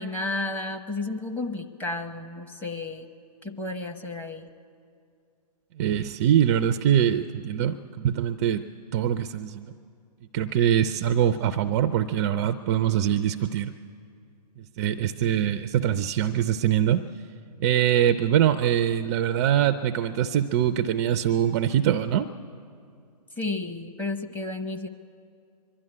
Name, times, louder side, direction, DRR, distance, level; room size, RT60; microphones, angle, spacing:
voice 1, 0.0-3.1 3.4-4.5 23.4-24.9, left 2 dB, 10° left, 4 dB, 0.8 m, -32 dB
voice 2, 5.8-8.6 8.9-9.7 10.3-13.7 14.6-17.0 17.6-22.3, right 10 dB, 25° right, 11 dB, 0.4 m, -23 dB
23.0 x 12.0 x 9.8 m, 2.4 s
hypercardioid pair, 135°, 21 cm